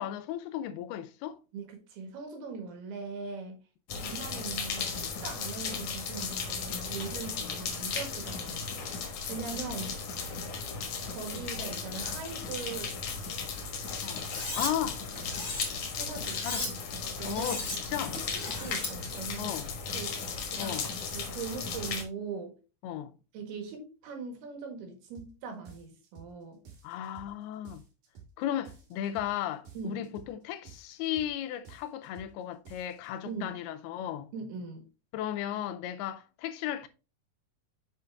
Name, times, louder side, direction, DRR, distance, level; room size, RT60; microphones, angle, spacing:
voice 1, 0.0-1.4 7.4-7.5 14.0-14.2 14.5-15.0 16.4-16.7 17.2-18.2 19.4-19.7 20.6-20.9 22.8-23.1 26.8-27.8 28.4-34.3 35.1-36.9, left 11 dB, 85° left, 2.6 m, -35 dB
voice 2, 1.5-3.6 4.0-8.6 9.3-10.0 11.2-13.0 16.0-16.7 17.0-17.6 17.9-19.6 19.9-22.5 23.3-26.6 29.8-30.0 33.3-33.6 34.3-34.9, right 5 dB, 80° right, 3.7 m, -41 dB
sound 1, 3.9-22.0, left 5 dB, 60° left, 1.8 m, -36 dB
Cutlery silverware, 14.2-14.7 15.2-15.7 16.2-16.7 17.2-17.8 18.1-18.9, left 2 dB, 30° left, 1.5 m, -36 dB
sound 2, 25.1-25.3 25.6-26.3 26.6-27.3 27.6-28.3 28.6-29.3 29.6-30.3 30.6-31.3 31.6-32.3 32.6-33.1, right 6 dB, 55° right, 3.2 m, -52 dB
7.0 x 5.8 x 3.4 m
omnidirectional pair, 4.5 m